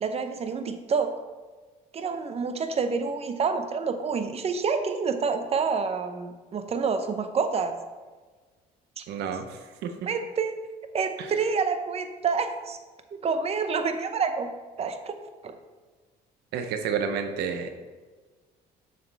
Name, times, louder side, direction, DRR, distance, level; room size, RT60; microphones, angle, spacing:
voice 1, 0.0-1.1 1.9-7.7 9.0-9.1 10.1-10.5 10.9-12.8 13.2-14.5 14.8-15.1 15.4-15.5, right 5 dB, 35° right, 8 dB, 0.7 m, -28 dB
voice 2, 9.1-9.9 11.2-11.3 16.5-17.7, right 6 dB, 80° right, 7 dB, 0.7 m, -30 dB
6.8 x 6.4 x 3.4 m, 1.4 s
cardioid pair, 110°, 17 cm